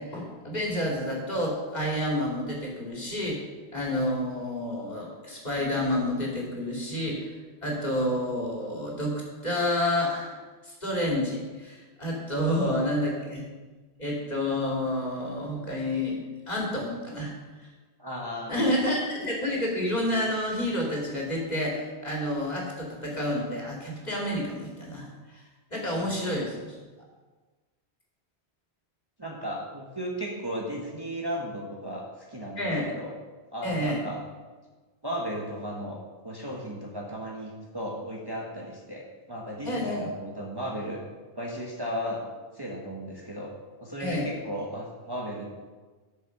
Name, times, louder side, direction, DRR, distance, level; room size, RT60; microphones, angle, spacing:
voice 1, 0.0-3.4 3.7-7.3 7.6-13.4 14.0-17.3 17.6-17.7 18.5-25.4 25.7-26.8 32.6-32.9 33.6-34.0 39.6-40.1 44.0-44.2, left 1 dB, 40° left, -2 dB, 2.8 m, -29 dB
voice 2, 12.6-13.0 18.0-18.7 25.9-26.3 29.2-33.1 33.5-34.2 35.0-36.0 36.2-41.0 41.3-42.2 42.5-43.5 43.8-45.5, equal, 20° right, -2 dB, 1.3 m, -35 dB
11.5 x 6.8 x 5.9 m, 1.3 s
omnidirectional pair, 1.1 m